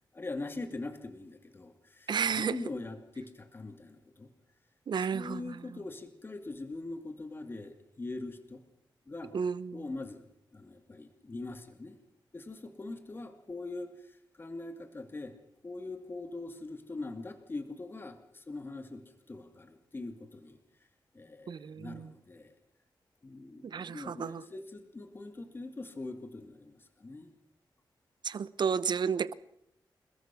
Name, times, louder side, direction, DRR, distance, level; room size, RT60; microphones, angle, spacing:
voice 1, 0.1-2.1 2.4-4.3 5.1-8.6 9.1-9.4 9.7-12.0 12.3-15.4 15.6-19.0 19.3-20.6 21.1-22.5 23.2-27.4, left 2 dB, 25° left, 2.4 m, -42 dB
voice 2, 2.1-2.6 4.9-5.6 9.3-9.8 21.5-22.1 23.6-24.4 28.2-29.3, right 6 dB, 60° right, 0.9 m, -32 dB
28.5 x 21.0 x 6.2 m
wide cardioid pair, 175°, 8 cm